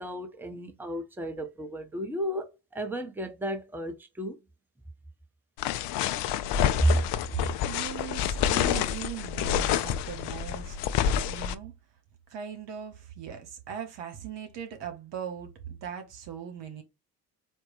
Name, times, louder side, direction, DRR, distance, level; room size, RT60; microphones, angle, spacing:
voice 1, 0.0-4.4, equal, 5° right, 0.9 m, -35 dB
sound 1, 5.6-11.5, left 9 dB, 55° left, 0.5 m, -28 dB
voice 2, 7.6-10.8 11.3-11.7 12.3-16.8, right 9 dB, 60° right, 1.3 m, -39 dB
4.4 x 2.1 x 3.2 m
figure-of-eight pair, 40°, 50 cm